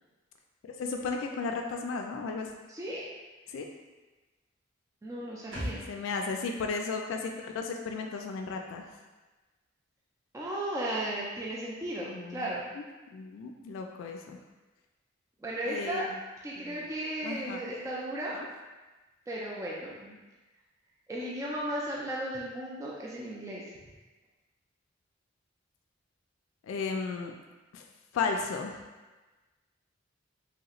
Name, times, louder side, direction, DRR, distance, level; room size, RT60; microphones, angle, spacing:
voice 1, 0.6-2.5 3.5-3.7 5.9-8.9 12.1-12.5 13.1-14.4 15.7-16.1 16.6-16.9 17.2-17.6 18.3-18.5 26.7-27.3 27.7-27.8 28.1-28.8, left 4 dB, 85° left, 4 dB, 0.3 m, -34 dB
voice 2, 2.7-3.0 5.0-5.9 10.3-12.6 15.4-16.1 16.4-18.4 19.3-20.2 21.1-23.7, right 1 dB, 15° right, -5 dB, 0.3 m, -35 dB
sound 1, 5.5-9.0 9.3-9.4, equal, 70° right, 1.2 m, -44 dB
3.3 x 2.9 x 2.4 m, 1.2 s
head